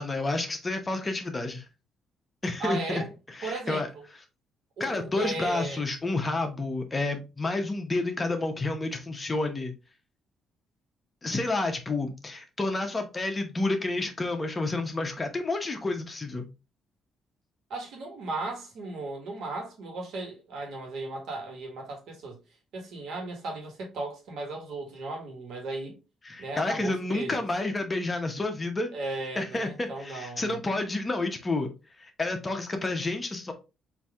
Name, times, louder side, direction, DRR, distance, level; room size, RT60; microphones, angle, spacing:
voice 1, 0.0-1.7 2.4-3.9 4.8-9.7 11.2-16.5 26.3-28.9 29.4-31.7 32.0-33.5, left 2 dB, 25° left, 0.9 m, -30 dB
voice 2, 2.6-3.1 3.4-4.0 4.8-5.8 17.7-22.4 22.7-25.9 26.4-27.4 28.9-30.6, right 2 dB, 75° right, 1.6 m, -36 dB
3.9 x 2.8 x 3.5 m
cardioid pair, 90°, 0 cm